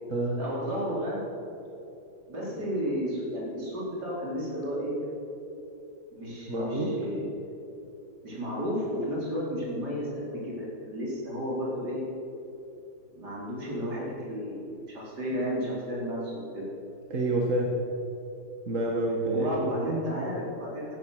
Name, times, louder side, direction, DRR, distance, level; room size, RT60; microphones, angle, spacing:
voice 1, 0.4-1.2 2.3-5.0 6.1-7.2 8.2-12.0 13.1-16.7 19.3-21.0, equal, 65° right, -5 dB, 4.7 m, -32 dB
voice 2, 6.5-6.9 17.1-17.7 18.7-19.7 20.2-20.3, right 2 dB, 45° right, -2 dB, 2.0 m, -28 dB
17.5 x 11.5 x 6.5 m, 2.9 s
omnidirectional pair, 1.9 m